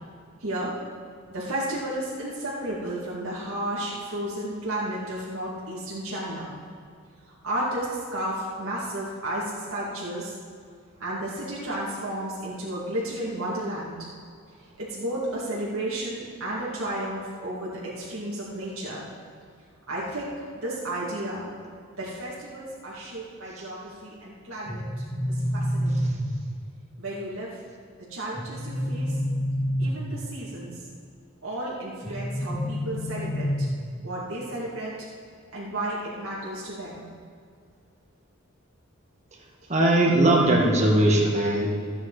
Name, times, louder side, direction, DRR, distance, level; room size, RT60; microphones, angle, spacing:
voice 1, 0.4-0.7 1.3-6.6 7.4-10.3 11.0-14.0 14.8-19.0 19.9-20.3 20.6-21.5 22.0-24.8 25.3-26.2 27.0-27.6 28.1-29.2 29.8-30.8 31.4-33.7 34.0-35.1 35.5-37.0, right 1 dB, 80° right, -7 dB, 2.2 m, -32 dB
sound 1, 24.7-26.7 28.3-30.4 32.0-34.0, equal, ahead, 2.0 m, -28 dB
voice 2, 39.7-41.7, right 1 dB, 35° right, -1 dB, 1.6 m, -19 dB
15.5 x 8.6 x 4.0 m, 2.2 s
head